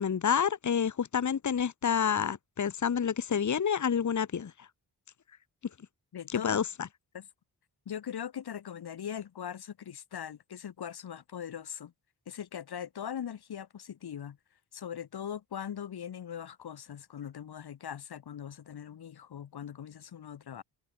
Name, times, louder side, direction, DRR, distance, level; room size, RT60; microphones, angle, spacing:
voice 1, 0.0-4.5 6.3-6.9, left 7 dB, 50° left, 1.3 m, -28 dB
voice 2, 6.1-6.6 7.1-7.3 7.8-11.9 12.3-14.4 14.7-20.6, left 9 dB, 75° left, 1.6 m, -40 dB
wide cardioid pair, 110°, 39 cm